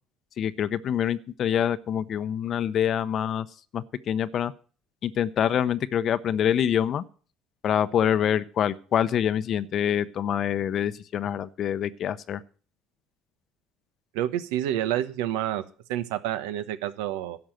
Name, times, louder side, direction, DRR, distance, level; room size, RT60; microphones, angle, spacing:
voice 1, 0.4-3.5 3.7-4.5 5.0-7.0 7.6-12.4, left 9 dB, 50° left, 14 dB, 0.7 m, -26 dB
voice 2, 14.1-15.6 15.9-17.4, right 12 dB, 85° right, 12 dB, 1.0 m, -28 dB
11.5 x 6.2 x 9.1 m, 0.40 s
supercardioid pair, 90°, 0 cm